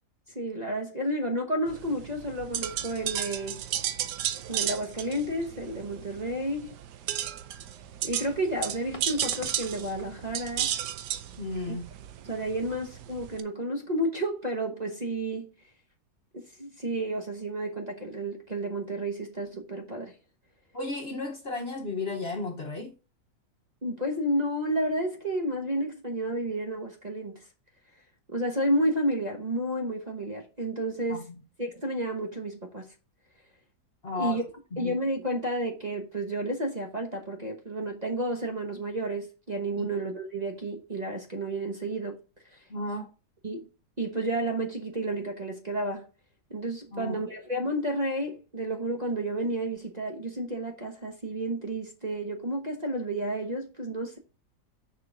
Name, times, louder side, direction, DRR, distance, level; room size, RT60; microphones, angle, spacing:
voice 1, 0.3-3.6 4.5-6.7 8.0-10.8 11.7-11.8 12.2-15.5 16.3-20.1 23.8-27.4 28.3-31.2 31.6-32.9 34.1-34.4 34.8-42.2 42.5-42.6 43.4-43.7 44.0-46.1 46.5-54.2, right 1 dB, 30° right, 1.1 m, -31 dB
sound 1, 1.7-13.4, right 10 dB, 90° right, 1.3 m, -34 dB
sound 2, 7.7-13.7, left 2 dB, 20° left, 1.4 m, -49 dB
voice 2, 11.4-11.9 20.7-22.9 31.1-31.4 34.0-34.4 34.7-35.0 39.8-39.9 42.7-43.1 46.9-47.2, left 3 dB, 45° left, 1.1 m, -34 dB
6.6 x 5.7 x 4.9 m
omnidirectional pair, 1.8 m